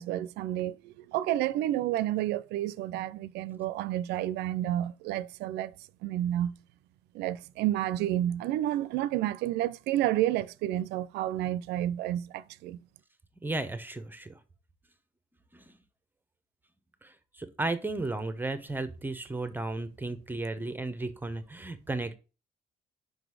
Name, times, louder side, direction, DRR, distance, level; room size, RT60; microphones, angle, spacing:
voice 1, 0.0-5.7 6.0-6.6 7.1-12.8, right 13 dB, 85° right, 0.4 m, -30 dB
voice 2, 13.4-14.4 15.5-15.7 17.0-22.2, right 2 dB, 10° right, 0.7 m, -34 dB
5.3 x 3.9 x 4.7 m
cardioid pair, 110°, 17 cm